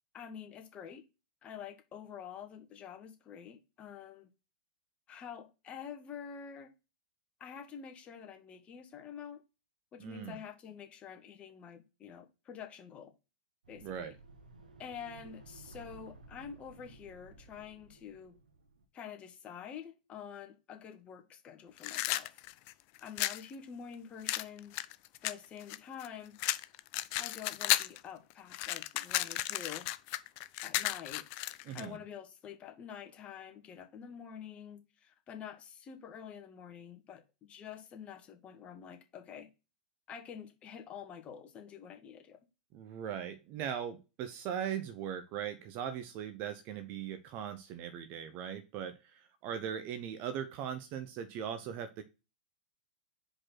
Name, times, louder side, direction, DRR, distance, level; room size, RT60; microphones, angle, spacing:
voice 1, 0.1-1.0 1.4-4.3 5.1-6.7 7.4-9.4 9.9-13.1 13.7-14.2 14.8-18.4 18.9-22.4 23.0-24.7 25.2-26.4 27.2-29.9 30.6-31.3 31.7-39.5 40.1-42.4, left 8 dB, 30° left, 1.4 m, -47 dB
voice 2, 10.0-10.4 13.8-14.2 31.6-32.0 42.7-52.0, right 9 dB, 45° right, 0.9 m, -39 dB
sound 1, 13.6-18.9, right 3 dB, 85° right, 1.5 m, -55 dB
sound 2, 21.8-23.4 24.3-26.1 26.4-28.0 28.3-31.9, left 16 dB, 45° left, 0.5 m, -34 dB
5.0 x 4.3 x 5.8 m
hypercardioid pair, 110°, 4 cm